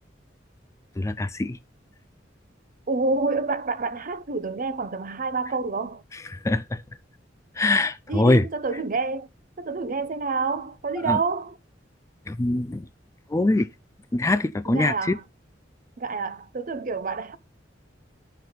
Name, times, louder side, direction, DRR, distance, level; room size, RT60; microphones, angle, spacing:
voice 1, 1.0-1.6 6.1-6.8 7.6-8.4 11.1-11.2 12.3-12.9 13.3-13.7 14.1-15.2, left 2 dB, 15° left, 0.3 m, -23 dB
voice 2, 2.9-6.0 8.1-9.3 9.6-11.6 14.7-15.2 16.0-17.4, right 4 dB, 45° right, 0.7 m, -28 dB
11.5 x 4.6 x 3.9 m
head